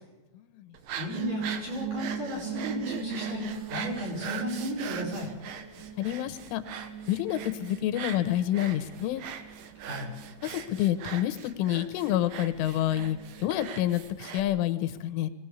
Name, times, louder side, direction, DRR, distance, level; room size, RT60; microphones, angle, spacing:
voice 1, 0.4-0.7 6.0-6.6 7.1-9.2 10.4-15.3, left 13 dB, 85° left, 10 dB, 3.6 m, -28 dB
sound 1, 0.7-14.4, right 8 dB, 65° right, 2.5 m, -41 dB
voice 2, 1.0-5.3 9.8-10.1, left 1 dB, 45° right, -1 dB, 6.9 m, -34 dB
sound 2, 1.1-14.2, right 6 dB, 85° right, 5.2 m, -41 dB
22.0 x 18.0 x 8.2 m, 1.1 s
omnidirectional pair, 5.5 m